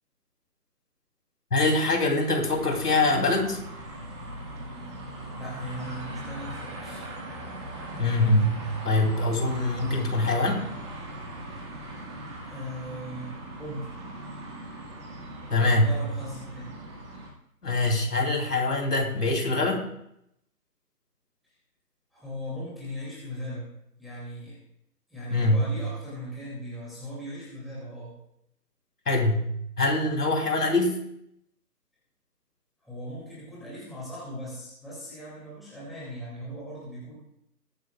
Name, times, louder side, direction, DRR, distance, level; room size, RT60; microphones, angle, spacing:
voice 1, 1.5-3.6 8.0-10.6 15.5-15.9 17.6-19.8 25.3-25.7 29.1-29.5 29.8-31.0, left 2 dB, 70° left, 2 dB, 3.0 m, -24 dB
sound 1, 2.5-17.3, right 1 dB, 20° right, 1.5 m, -40 dB
voice 2, 5.4-7.0 11.5-11.6 12.5-13.9 15.5-16.7 22.1-23.7 24.0-24.6 25.1-28.2 32.8-37.1, equal, ahead, -9 dB, 2.3 m, -38 dB
20.5 x 9.3 x 2.3 m, 0.75 s
figure-of-eight pair, 155°, 48 cm